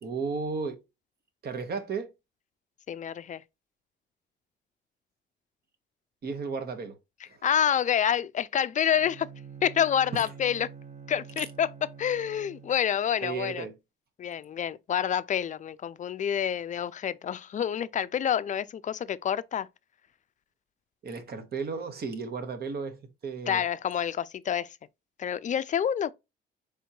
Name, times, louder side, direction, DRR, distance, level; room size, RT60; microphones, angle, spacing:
voice 1, 0.0-0.8 1.4-2.1 6.2-7.0 7.3-7.4 10.1-10.2 11.4-11.5 13.2-13.7 21.0-23.6, right 5 dB, 50° right, 1.1 m, -34 dB
voice 2, 2.9-3.4 7.4-9.3 9.6-10.7 11.1-11.7 12.0-13.7 14.2-19.7 23.5-24.7 25.2-26.1, left 9 dB, 40° left, 0.4 m, -28 dB
Bowed string instrument, 8.9-13.0, right 6 dB, 35° right, 0.8 m, -47 dB
4.4 x 3.5 x 2.7 m
cardioid pair, 90°, 20 cm